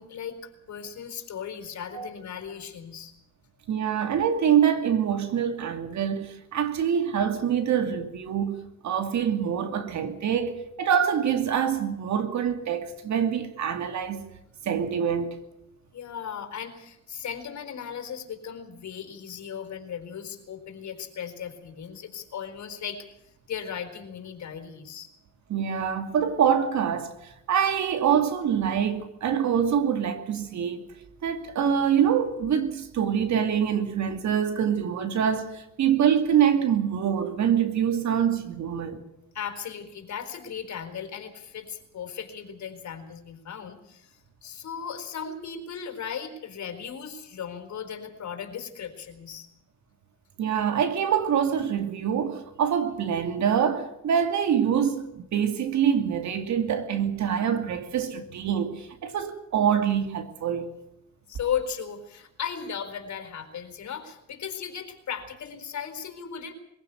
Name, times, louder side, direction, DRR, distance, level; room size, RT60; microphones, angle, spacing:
voice 1, 0.0-3.1 15.9-23.0 23.5-25.1 39.3-49.5 61.3-66.5, left 7 dB, 65° left, 4.2 m, -36 dB
voice 2, 3.7-14.3 14.6-15.4 25.5-30.9 31.2-39.0 50.4-60.7, right 8 dB, 65° right, 2.7 m, -25 dB
22.5 x 16.0 x 8.3 m
cardioid pair, 90°, 30 cm